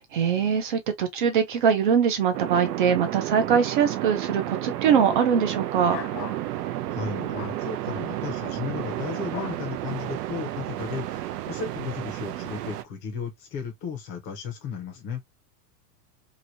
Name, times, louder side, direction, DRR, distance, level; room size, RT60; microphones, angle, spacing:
voice 1, 0.1-6.0, right 7 dB, 35° right, 0.4 m, -22 dB
sound 1, 2.3-12.8, right 14 dB, 75° right, 0.6 m, -32 dB
sound 2, 5.9-6.4 7.3-7.6 9.3-9.6, left 10 dB, 85° left, 0.8 m, -37 dB
voice 2, 6.6-15.2, left 6 dB, 20° left, 0.6 m, -35 dB
3.0 x 2.6 x 2.5 m
supercardioid pair, 175°, 49 cm